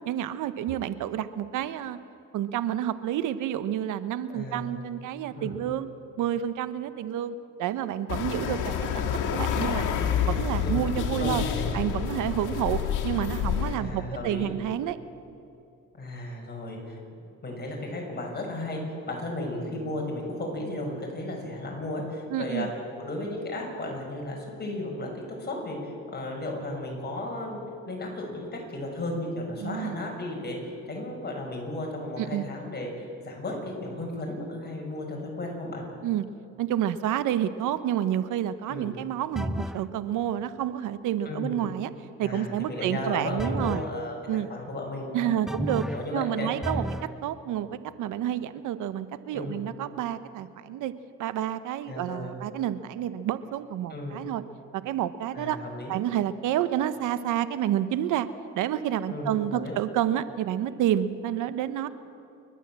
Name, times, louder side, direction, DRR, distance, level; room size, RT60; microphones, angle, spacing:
voice 1, 0.0-2.0 2.3-5.9 6.2-9.9 10.3-11.4 11.7-15.0 22.3-22.7 29.6-30.0 32.2-32.5 36.0-36.3 36.6-41.9 42.2-43.8 44.3-44.5 45.1-45.8 46.1-46.8 47.2-50.9 51.2-54.4 54.7-55.6 55.9-58.3 58.6-61.9, right 11 dB, 90° right, 13 dB, 0.9 m, -29 dB
voice 2, 4.3-4.7 5.3-5.6 10.6-11.7 13.7-14.5 16.0-17.0 17.4-18.8 19.1-22.7 23.0-27.6 27.9-30.6 30.9-35.8 38.7-39.0 41.2-41.6 42.2-45.3 45.9-46.8 49.3-49.6 51.9-52.3 53.9-54.2 55.3-55.9 59.1-59.7, left 1 dB, 35° left, 0 dB, 6.4 m, -34 dB
sound 1, 8.1-13.8, left 8 dB, 85° left, 2.1 m, -28 dB
sound 2, 39.4-39.9 43.4-43.9 45.5-46.1 46.6-47.1, equal, ahead, 0.5 m, -31 dB
29.0 x 12.0 x 7.5 m, 2.6 s
cardioid pair, 90°, 30 cm